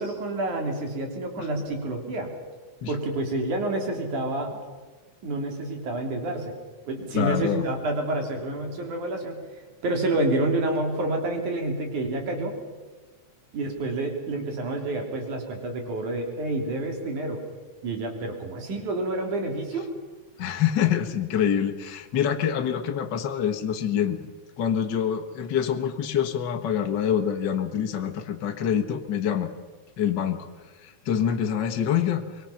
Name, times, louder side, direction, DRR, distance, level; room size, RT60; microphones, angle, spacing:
voice 1, 0.0-2.3 2.9-4.5 5.2-6.5 6.9-9.4 9.8-12.5 13.5-17.4 17.8-19.9, right 2 dB, 70° right, 3 dB, 4.7 m, -28 dB
voice 2, 7.1-7.6 20.4-24.2 24.6-29.5 30.0-30.5 30.8-32.5, left 9 dB, 50° left, 6 dB, 1.3 m, -26 dB
24.0 x 22.5 x 5.8 m, 1.3 s
omnidirectional pair, 3.6 m